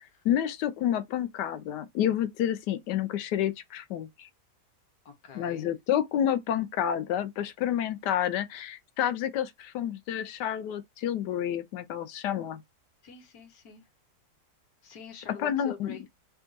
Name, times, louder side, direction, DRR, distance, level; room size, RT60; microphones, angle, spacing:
voice 1, 0.2-4.3 5.3-12.6 15.4-16.0, left 10 dB, 85° left, 1.2 m, -29 dB
voice 2, 5.0-5.7 13.0-13.9 14.8-16.0, left 6 dB, 65° left, 1.5 m, -46 dB
3.5 x 2.3 x 3.9 m
omnidirectional pair, 1.8 m